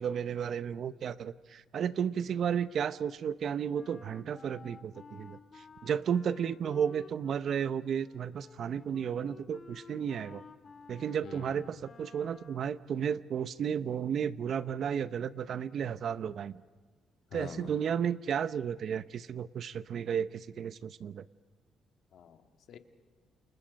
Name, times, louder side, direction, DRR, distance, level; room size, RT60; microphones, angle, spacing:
voice 1, 0.0-5.4 5.8-10.4 10.9-16.6 17.3-21.2, right 8 dB, 60° right, 15 dB, 0.8 m, -33 dB
Wind instrument woodwind instrument, 3.7-12.7, left 4 dB, 40° left, 1.9 m, -52 dB
voice 2, 11.2-11.8 17.3-17.7 22.1-22.4 22.7-22.8, left 8 dB, 70° left, 7 dB, 1.9 m, -46 dB
29.0 x 28.0 x 5.3 m, 1.5 s
cardioid pair, 90°, 0 cm